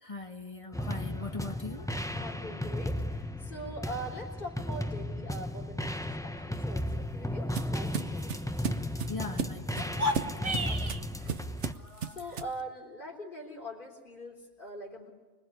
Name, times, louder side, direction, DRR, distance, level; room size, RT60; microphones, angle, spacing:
voice 1, 0.0-1.9 2.2-2.4 6.4-6.5 6.7-6.9 9.1-11.4 11.7-12.4, left 4 dB, 30° left, 6 dB, 1.5 m, -43 dB
sound 1, 0.7-11.7, left 1 dB, 5° left, 0.8 m, -35 dB
voice 2, 2.1-8.3 9.8-9.9 10.6-10.9 11.3-11.4 12.1-15.1, equal, 45° left, 0 dB, 4.0 m, -42 dB
sound 2, 6.6-12.6, right 6 dB, 75° right, 1.3 m, -37 dB
sound 3, 9.8-11.0, left 1 dB, 30° right, 1.5 m, -31 dB
26.0 x 21.5 x 9.8 m, 1.4 s
omnidirectional pair, 1.2 m